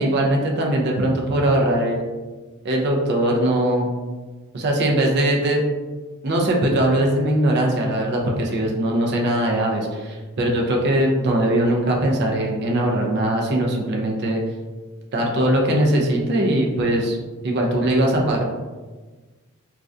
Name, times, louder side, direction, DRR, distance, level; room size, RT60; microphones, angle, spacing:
voice 1, 0.0-2.0 2.6-3.9 4.5-5.6 6.2-14.4 15.1-17.2 17.4-18.4, right 1 dB, 50° right, 0 dB, 0.4 m, -20 dB
2.3 x 2.1 x 2.5 m, 1.3 s
head